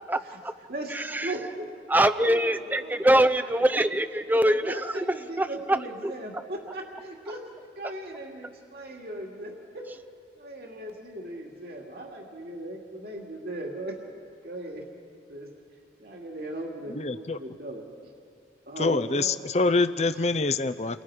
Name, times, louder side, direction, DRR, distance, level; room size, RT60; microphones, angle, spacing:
voice 1, 0.1-0.5 0.9-1.3 1.9-6.1, right 1 dB, 10° right, 10 dB, 0.6 m, -24 dB
voice 2, 0.7-1.7 2.3-3.0 3.3-3.5 3.8-3.9 4.4-7.4 7.8-9.9 10.4-14.0 14.4-14.9 15.3-15.5 16.0-17.8 18.7-19.3, right 1 dB, 55° right, -1 dB, 2.5 m, -38 dB
voice 3, 16.9-17.4 18.8-21.0, left 3 dB, 35° left, 11 dB, 0.6 m, -25 dB
29.5 x 24.0 x 5.0 m, 2.3 s
head